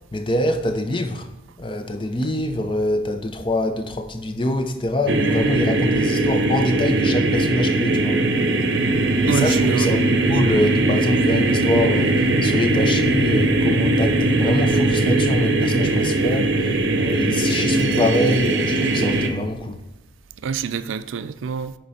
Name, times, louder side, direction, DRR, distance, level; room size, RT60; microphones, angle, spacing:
voice 1, 0.1-1.3 1.6-8.2 9.2-16.7 17.0-19.8, left 1 dB, 25° left, 0.6 m, -24 dB
sound 1, 5.1-19.3, right 2 dB, 60° right, 0.7 m, -20 dB
voice 2, 9.3-9.9 20.4-21.8, right 6 dB, 80° right, 0.4 m, -26 dB
9.9 x 4.5 x 4.2 m
head